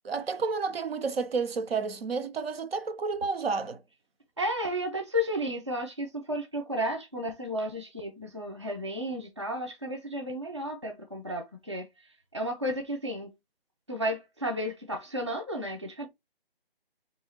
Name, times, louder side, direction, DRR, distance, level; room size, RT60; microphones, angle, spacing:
voice 1, 0.0-3.8, right 4 dB, 75° right, 0.6 m, -31 dB
voice 2, 4.4-11.9 12.3-13.3 13.9-16.1, equal, 30° right, 0.4 m, -33 dB
3.7 x 2.7 x 2.7 m
figure-of-eight pair, 165°, 30 cm